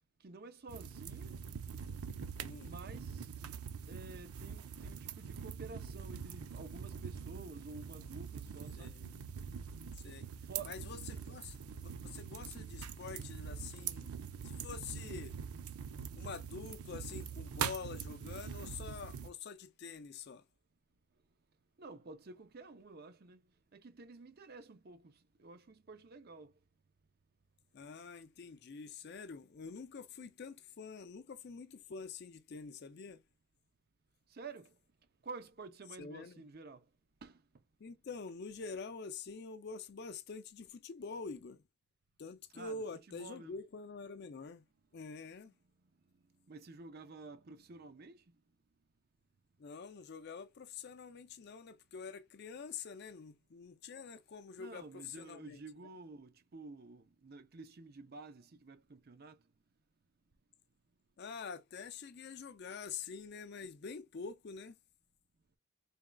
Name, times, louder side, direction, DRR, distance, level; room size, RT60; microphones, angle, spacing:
voice 1, 0.2-1.3 2.6-3.3 3.9-8.9 10.5-10.7 21.8-23.4 23.7-26.5 34.3-34.8 35.2-36.8 37.2-37.4 42.5-42.8 43.1-43.6 46.5-48.4 54.6-59.4, right 3 dB, 45° right, 0.5 m, -51 dB
sound 1, 0.7-19.3, right 7 dB, 90° right, 0.6 m, -44 dB
voice 2, 2.4-2.7 8.8-9.1 10.0-10.3 10.6-14.1 14.4-15.3 16.2-20.4 27.7-33.2 36.0-36.4 37.8-41.6 42.2-44.6 44.9-45.5 49.6-55.6 61.2-64.8, left 5 dB, 50° left, 0.4 m, -46 dB
4.0 x 3.6 x 2.2 m
head